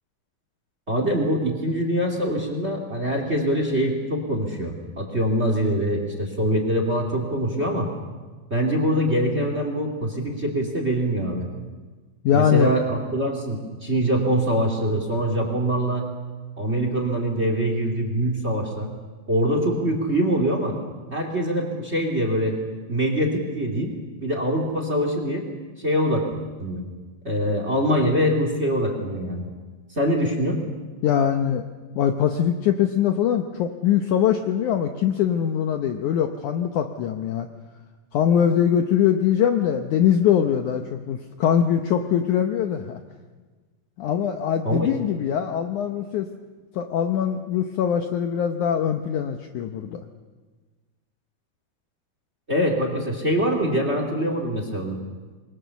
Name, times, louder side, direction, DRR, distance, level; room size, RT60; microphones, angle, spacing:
voice 1, 0.9-7.9 8.5-11.5 12.3-16.0 16.6-18.9 19.3-20.8 21.1-22.5 22.9-23.9 24.2-25.4 25.8-26.2 26.6-26.8 27.2-29.4 29.9-30.6 44.6-44.9 52.5-55.0, equal, 20° right, 4 dB, 2.2 m, -24 dB
voice 2, 12.2-12.7 31.0-31.6 32.0-37.5 38.1-43.0 44.0-46.3 46.7-50.0, left 9 dB, 70° left, 6 dB, 1.9 m, -22 dB
26.5 x 22.0 x 7.0 m, 1.4 s
omnidirectional pair, 4.5 m